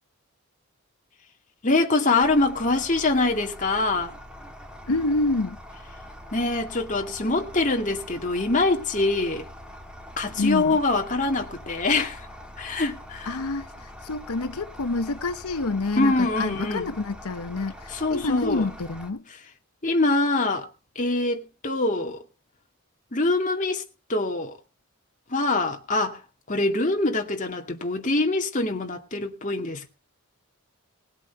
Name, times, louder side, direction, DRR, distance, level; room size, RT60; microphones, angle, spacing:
voice 1, 1.6-4.1 6.3-9.5 10.2-12.3 12.6-13.4 16.0-16.9 17.9-18.6 19.8-20.7 21.0-22.2 23.1-23.8 24.1-24.6 25.3-26.2 26.5-29.9, left 2 dB, 35° left, 2.2 m, -24 dB
sound 1, 2.2-19.1, equal, 5° right, 1.9 m, -43 dB
voice 2, 4.9-5.6 10.4-10.8 13.2-19.2, left 3 dB, 85° left, 0.9 m, -28 dB
19.5 x 8.2 x 4.6 m
head